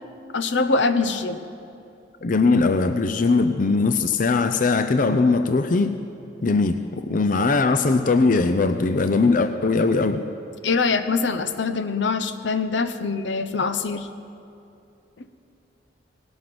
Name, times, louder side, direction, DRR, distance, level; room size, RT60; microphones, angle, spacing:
voice 1, 0.3-1.4 10.6-14.1, left 4 dB, 80° left, 10 dB, 0.8 m, -23 dB
voice 2, 2.2-6.0 6.4-10.2, left 3 dB, 45° left, 9 dB, 0.5 m, -20 dB
18.5 x 12.5 x 6.2 m, 2.7 s
head